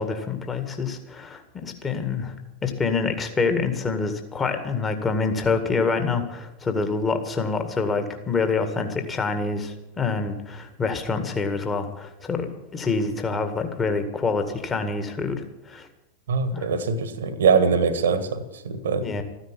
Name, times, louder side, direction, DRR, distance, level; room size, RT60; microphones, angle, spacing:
voice 1, 0.0-2.3 2.6-12.5 12.7-15.9 16.5-16.7 19.0-19.2, left 4 dB, 20° left, 7 dB, 1.9 m, -26 dB
voice 2, 16.3-19.1, right 5 dB, 65° right, 12 dB, 1.5 m, -22 dB
14.0 x 10.0 x 8.5 m, 0.99 s
figure-of-eight pair, 90°, 0 cm